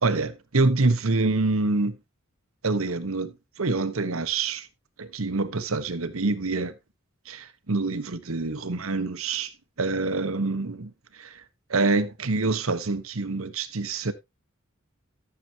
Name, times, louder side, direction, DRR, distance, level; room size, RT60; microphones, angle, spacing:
voice 1, 0.0-2.0 2.6-4.7 5.0-6.7 7.3-9.5 9.8-11.4 11.7-14.1, right 3 dB, 75° right, 1.1 m, -26 dB
14.0 x 6.9 x 2.8 m
head